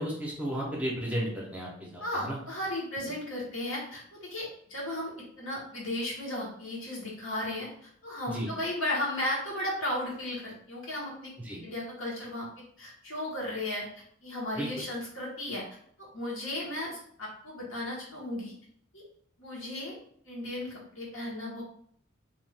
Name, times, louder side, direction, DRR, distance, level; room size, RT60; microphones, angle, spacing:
voice 1, 0.0-2.4 8.3-8.5 11.5-11.6 14.6-14.7, equal, 5° right, -4 dB, 0.6 m, -33 dB
voice 2, 2.0-5.1 5.4-11.3 11.6-12.5 12.8-15.6 16.0-18.5 18.9-19.0 19.4-19.9 20.2-21.6, left 1 dB, 75° left, -4 dB, 1.2 m, -35 dB
2.7 x 2.3 x 3.3 m, 0.63 s
head